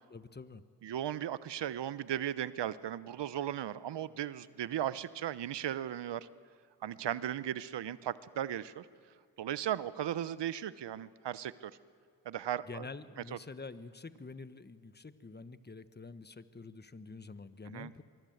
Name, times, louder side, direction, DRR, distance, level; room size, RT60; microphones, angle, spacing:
voice 1, 0.1-0.6 12.7-18.0, left 4 dB, 20° left, 13 dB, 1.3 m, -47 dB
voice 2, 0.8-6.3 6.8-8.9 9.4-11.7 12.2-12.9 13.3-13.4 17.7-17.9, right 11 dB, 65° right, 16 dB, 0.9 m, -36 dB
23.5 x 23.0 x 7.9 m, 2.1 s
supercardioid pair, 45°, 45 cm